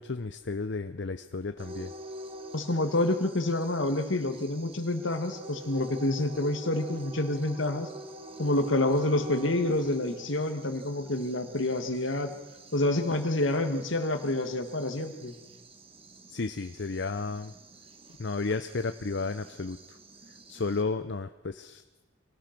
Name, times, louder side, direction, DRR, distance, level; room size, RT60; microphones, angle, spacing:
voice 1, 0.0-1.9 16.3-17.5 18.2-20.0 20.5-21.8, left 3 dB, 60° left, 10 dB, 0.7 m, -33 dB
sound 1, 1.6-20.8, right 1 dB, 30° right, 1.9 m, -47 dB
voice 2, 2.5-7.9 8.4-12.3 12.7-15.4, left 2 dB, 80° left, 7 dB, 2.0 m, -28 dB
24.5 x 18.5 x 6.1 m, 1.1 s
head